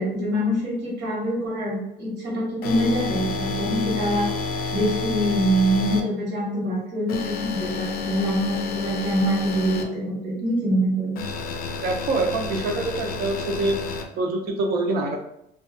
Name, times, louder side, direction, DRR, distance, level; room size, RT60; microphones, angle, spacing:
voice 1, 0.0-4.3 4.7-11.2, equal, 85° right, -4 dB, 1.2 m, -24 dB
sound 1, 2.6-6.0 7.1-9.8 11.2-14.0, left 4 dB, 60° left, 0.4 m, -30 dB
voice 2, 11.8-13.8 14.2-15.2, right 2 dB, 70° right, 2 dB, 0.6 m, -25 dB
2.3 x 2.3 x 2.6 m, 0.78 s
cardioid pair, 110°, 17 cm